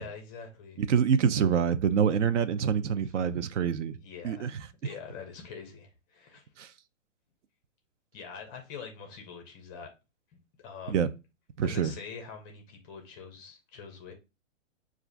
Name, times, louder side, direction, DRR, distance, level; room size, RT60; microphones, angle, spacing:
voice 1, 0.0-0.8 4.0-6.5 8.1-9.9 10.6-11.1 11.6-14.1, left 6 dB, 15° left, 0.4 m, -44 dB
voice 2, 0.8-4.0 4.2-4.5 6.6-6.7 10.9-11.1 11.6-11.9, right 7 dB, 65° right, 0.6 m, -26 dB
6.5 x 2.4 x 2.4 m
hypercardioid pair, 135°, 38 cm